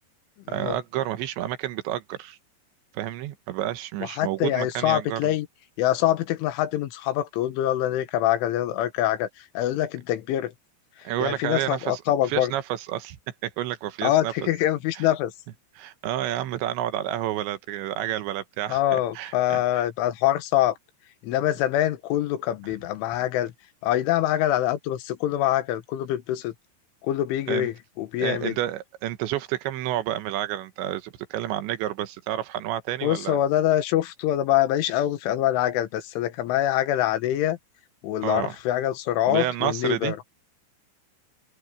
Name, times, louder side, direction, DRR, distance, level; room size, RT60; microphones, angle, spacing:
voice 1, 0.5-2.4 2.9-5.3 11.0-12.0 12.3-13.2 13.4-14.3 14.9-15.1 15.8-19.8 27.5-27.7 28.2-33.4 38.2-38.6 39.3-40.1, right 13 dB, 80° right, 3.3 m, -30 dB
voice 2, 4.1-5.5 5.8-10.5 11.0-12.5 14.0-15.3 18.7-20.8 21.2-23.5 23.8-26.5 27.0-28.5 33.0-37.6 38.0-40.2, left 13 dB, 90° left, 3.9 m, -24 dB
open air
omnidirectional pair, 5.4 m